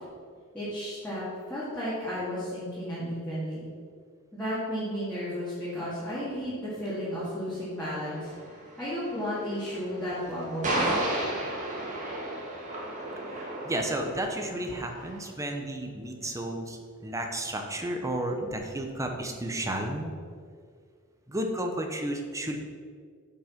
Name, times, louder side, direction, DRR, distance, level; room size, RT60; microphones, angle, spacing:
voice 1, 0.5-1.2 1.5-3.7 4.3-8.3 8.8-11.0, equal, 5° left, -11 dB, 2.3 m, -33 dB
sound 1, 7.8-15.2, right 1 dB, 35° right, 2.0 m, -33 dB
voice 2, 13.6-20.1 21.3-22.6, right 1 dB, 15° right, 3 dB, 0.9 m, -32 dB
8.8 x 5.4 x 5.9 m, 2.1 s
head